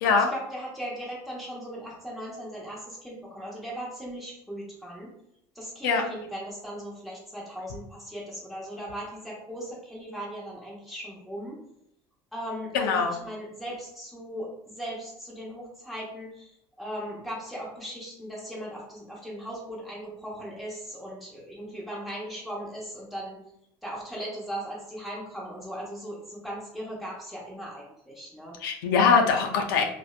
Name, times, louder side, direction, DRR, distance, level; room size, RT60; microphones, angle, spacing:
voice 1, 0.0-5.1 5.5-11.6 12.3-23.4 23.8-28.5, equal, ahead, -6 dB, 1.0 m, -38 dB
voice 2, 12.7-13.2 28.6-29.8, left 5 dB, 90° left, 3 dB, 0.4 m, -22 dB
2.5 x 2.1 x 2.3 m, 0.76 s
supercardioid pair, 95°, 11 cm